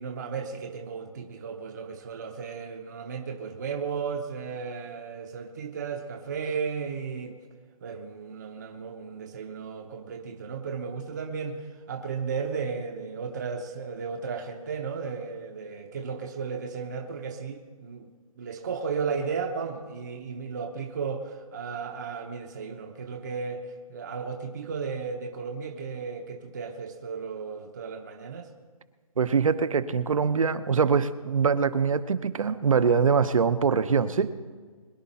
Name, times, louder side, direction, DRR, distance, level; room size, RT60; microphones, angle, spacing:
voice 1, 0.0-7.4 7.8-18.1 18.4-28.5, right 5 dB, 30° right, 2 dB, 0.8 m, -34 dB
voice 2, 29.2-34.3, right 6 dB, 65° right, 12 dB, 0.9 m, -23 dB
22.0 x 11.0 x 4.2 m, 1.5 s
hypercardioid pair, 170°, 18 cm